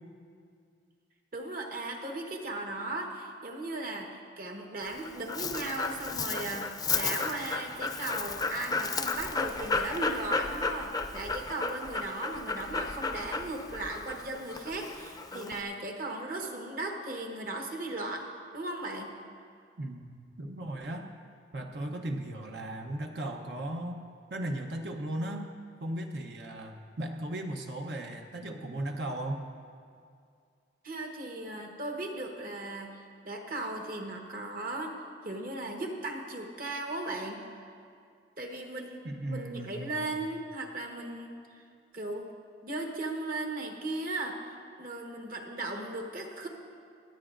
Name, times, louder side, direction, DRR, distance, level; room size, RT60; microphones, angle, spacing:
voice 1, 1.3-18.3 18.5-19.1 30.8-34.9 35.2-37.4 38.4-41.4 41.9-42.3 42.6-44.4 44.8-46.5, right 2 dB, 50° right, 2 dB, 1.2 m, -37 dB
Dog, 4.8-15.6, left 4 dB, 20° left, 0.5 m, -33 dB
voice 2, 19.8-21.1 21.5-24.0 24.3-25.5 25.8-29.4 39.0-40.0, right 1 dB, 70° right, 3 dB, 0.8 m, -36 dB
25.5 x 8.9 x 2.5 m, 2.3 s
head